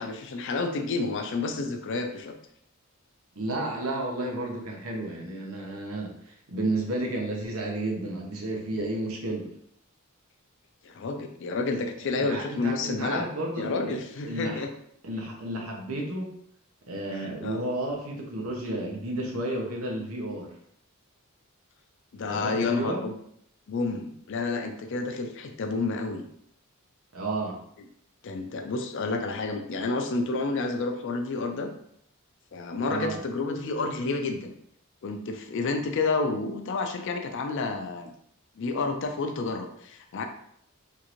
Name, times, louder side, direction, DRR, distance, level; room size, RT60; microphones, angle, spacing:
voice 1, 0.0-2.4 10.8-13.3 13.6-14.7 17.4-17.6 22.1-23.2 23.7-26.2 28.2-31.7 32.5-34.5 35.0-38.1 38.6-40.3, left 3 dB, 55° left, 5 dB, 0.4 m, -30 dB
voice 2, 3.4-9.5 12.0-14.0 14.2-14.6 15.0-16.3 16.9-20.5 22.2-23.1 27.1-27.6 32.8-33.2, right 1 dB, 75° right, -1 dB, 0.8 m, -32 dB
3.7 x 2.5 x 3.0 m, 0.70 s
head